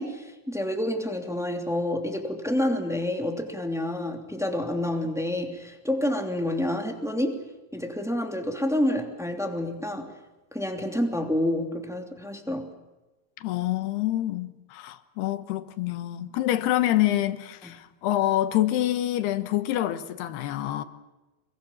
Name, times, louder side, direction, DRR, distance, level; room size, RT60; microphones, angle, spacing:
voice 1, 0.0-7.5 7.7-10.1 10.5-12.7 17.6-17.8, left 1 dB, ahead, 1.9 m, -28 dB
voice 2, 13.4-20.8, left 13 dB, 80° left, 3.2 m, -26 dB
26.5 x 23.0 x 7.3 m
omnidirectional pair, 4.7 m